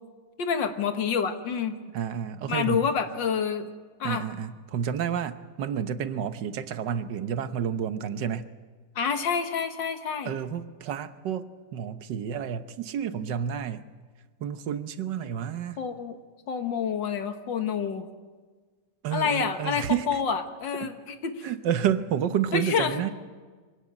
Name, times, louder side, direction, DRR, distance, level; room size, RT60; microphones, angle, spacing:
voice 1, 0.4-1.8 2.5-3.7 4.0-4.3 9.0-10.3 15.8-16.2 16.5-18.1 19.1-21.5 22.5-23.1, left 6 dB, 85° left, 7 dB, 2.1 m, -28 dB
voice 2, 1.9-2.9 4.0-8.5 10.2-13.8 14.4-15.8 19.0-20.2 20.8-20.9 21.4-23.1, right 8 dB, 75° right, 11 dB, 1.6 m, -30 dB
24.5 x 17.0 x 8.9 m, 1.5 s
omnidirectional pair, 2.0 m